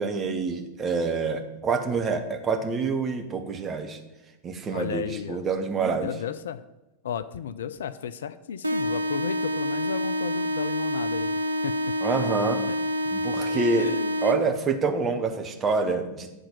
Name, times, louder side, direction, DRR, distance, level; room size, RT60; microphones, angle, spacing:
voice 1, 0.0-4.0 4.4-6.1 12.0-12.6 13.1-13.9 14.2-16.3, right 4 dB, 25° right, 6 dB, 1.0 m, -27 dB
voice 2, 4.7-5.4 5.9-6.6 7.0-11.8 12.7-12.8 13.8-14.2, left 8 dB, 60° left, 13 dB, 0.4 m, -34 dB
sound 1, 8.6-14.6, equal, 85° right, 0.5 m, -27 dB
9.7 x 4.3 x 6.8 m, 0.99 s
figure-of-eight pair, 90°, 0 cm